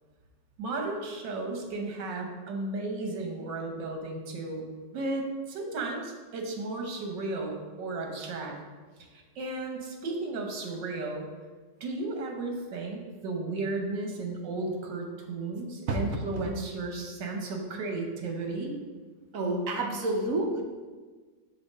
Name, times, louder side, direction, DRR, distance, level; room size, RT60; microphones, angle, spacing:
voice 1, 0.6-4.7 4.9-8.6 9.1-11.3 11.8-18.8, right 3 dB, 80° right, 2 dB, 1.7 m, -34 dB
voice 2, 19.3-20.6, right 2 dB, 60° right, 2 dB, 1.0 m, -29 dB
5.7 x 3.8 x 5.5 m, 1.4 s
omnidirectional pair, 1.9 m